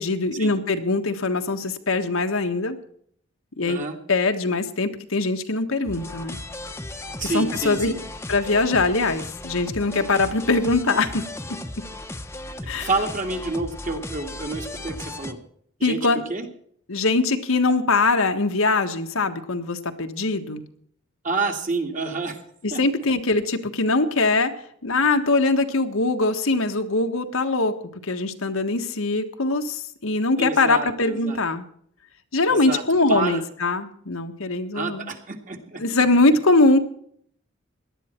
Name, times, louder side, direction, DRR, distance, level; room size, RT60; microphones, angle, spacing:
voice 1, 0.0-2.8 3.6-3.8 4.1-6.4 7.2-7.9 8.3-11.2 12.7-12.9 15.8-16.2 16.9-20.6 22.6-24.5 24.8-27.7 28.0-31.6 32.3-35.1 35.8-36.8, left 3 dB, 85° left, 6 dB, 1.5 m, -22 dB
sound 1, 5.9-15.3, left 2 dB, 15° left, 0.9 m, -36 dB
voice 2, 7.2-8.0 12.8-15.4 15.8-16.0 16.3-16.4 21.2-22.4 22.7-22.8 30.4-31.4 32.5-32.8 33.1-33.4 34.7-35.8, right 3 dB, 40° right, 4 dB, 2.1 m, -28 dB
18.0 x 11.5 x 4.5 m, 0.63 s
head